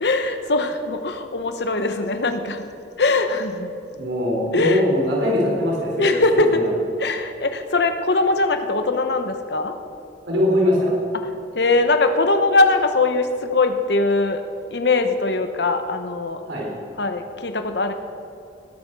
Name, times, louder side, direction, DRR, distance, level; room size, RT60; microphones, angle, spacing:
voice 1, 0.0-2.6 3.0-3.7 4.5-4.8 6.0-6.6 7.0-9.8 11.5-14.4 14.7-16.4 17.0-17.9, left 3 dB, 70° left, 8 dB, 1.0 m, -21 dB
voice 2, 3.9-6.7 10.3-10.9 16.5-16.7, left 1 dB, 90° right, -3 dB, 3.8 m, -21 dB
20.0 x 11.5 x 4.7 m, 2.8 s
head